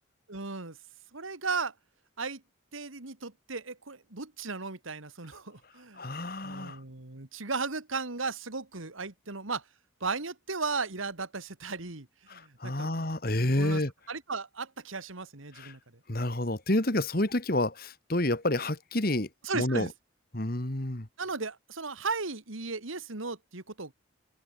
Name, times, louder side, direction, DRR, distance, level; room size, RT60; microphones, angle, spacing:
voice 1, 0.3-0.8 1.1-1.7 2.2-2.4 2.7-6.1 6.4-9.6 10.0-13.0 13.6-13.8 14.1-15.8 19.4-19.9 21.2-23.9, right 4 dB, 85° right, 2.3 m, -36 dB
voice 2, 6.0-6.8 12.3-13.9 15.5-15.8 16.1-19.9 20.3-21.1, left 1 dB, 45° left, 2.1 m, -29 dB
open air
head